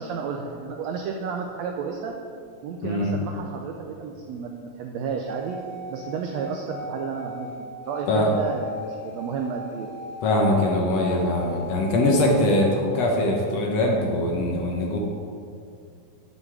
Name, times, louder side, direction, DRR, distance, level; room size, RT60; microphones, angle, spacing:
voice 1, 0.0-2.1 2.6-5.6 5.9-9.9, right 6 dB, 85° right, 2 dB, 1.5 m, -32 dB
voice 2, 2.8-3.2 8.1-8.3 10.2-15.0, left 1 dB, 60° left, -1 dB, 1.9 m, -22 dB
sound 1, 5.2-10.6 10.9-12.6, left 1 dB, 20° left, 2.2 m, -39 dB
9.8 x 7.9 x 4.8 m, 2.5 s
omnidirectional pair, 3.8 m